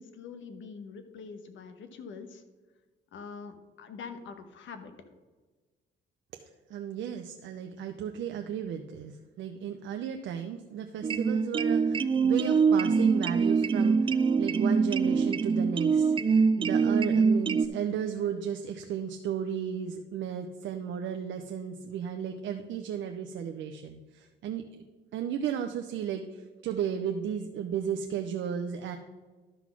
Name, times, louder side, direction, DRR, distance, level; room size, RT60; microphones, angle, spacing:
voice 1, 0.0-2.4 3.1-4.9, left 5 dB, 75° left, 8 dB, 1.1 m, -44 dB
voice 2, 6.7-24.8 25.1-29.0, right 8 dB, 75° right, 5 dB, 0.6 m, -34 dB
sound 1, 11.0-17.7, right 5 dB, 25° right, 0.3 m, -24 dB
12.0 x 4.0 x 6.0 m, 1.3 s
cardioid pair, 90°, 20 cm